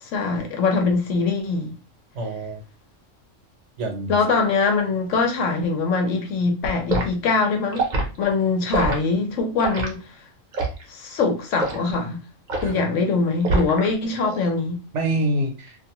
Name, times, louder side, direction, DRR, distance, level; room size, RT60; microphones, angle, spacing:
voice 1, 0.0-1.7 4.1-7.9 8.2-10.0 10.9-12.2 12.6-14.8, left 4 dB, 75° left, 1.0 m, -22 dB
voice 2, 2.1-2.6 3.8-4.2 12.6-12.8 14.9-15.9, right 1 dB, 70° right, 1.0 m, -26 dB
Liquid, 6.9-7.1 7.7-8.1 8.7-9.0 9.6-9.9 10.5-10.8 11.6-11.8 12.5-12.8 13.4-13.9 14.2-14.5, right 2 dB, 45° right, 0.7 m, -24 dB
2.5 x 2.4 x 2.9 m
omnidirectional pair, 1.3 m